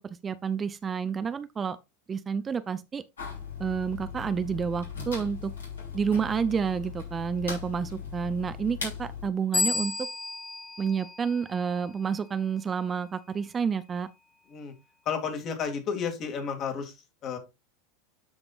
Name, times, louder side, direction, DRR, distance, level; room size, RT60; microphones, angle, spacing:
voice 1, 0.0-1.8 2.1-3.0 3.6-5.5 5.9-10.1 10.8-14.1, right 6 dB, 25° right, 0.5 m, -29 dB
sound 1, 3.2-9.3, left 6 dB, 75° left, 4.1 m, -38 dB
sound 2, 9.5-12.0, left 3 dB, 15° left, 0.7 m, -32 dB
voice 2, 15.1-17.4, left 6 dB, 40° left, 2.4 m, -32 dB
12.5 x 5.3 x 2.5 m
figure-of-eight pair, 80°, 0 cm